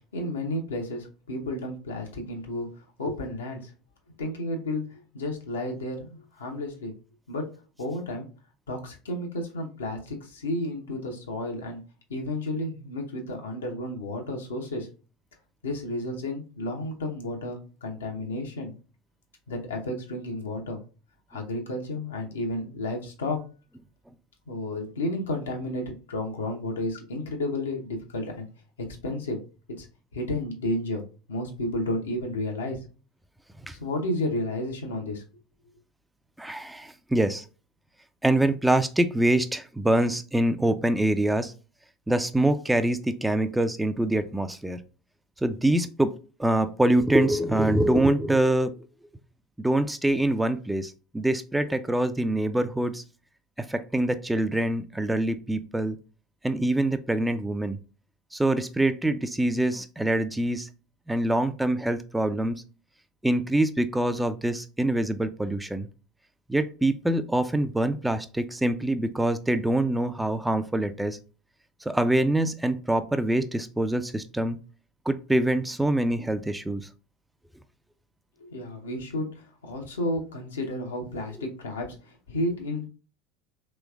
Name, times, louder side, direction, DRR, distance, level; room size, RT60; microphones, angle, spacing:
voice 1, 0.1-2.7 3.0-3.7 4.2-6.9 7.3-7.5 7.8-8.3 8.7-11.8 12.1-14.9 15.6-18.7 19.5-20.8 21.3-23.4 24.5-28.5 28.8-29.4 29.8-29.9 30.1-32.8 33.7-35.2 78.4-82.9, left 1 dB, 80° left, 2 dB, 0.7 m, -32 dB
voice 2, 36.4-37.4 38.2-41.5 42.1-44.8 45.4-46.1 46.4-48.9 49.6-53.0 53.6-56.0 56.4-57.8 58.3-60.7 61.1-62.6 63.2-65.9 66.5-71.2 71.8-74.6 75.1-76.9, right 1 dB, 5° right, 10 dB, 0.3 m, -25 dB
3.1 x 3.1 x 2.3 m, 0.35 s
figure-of-eight pair, 75°, 0 cm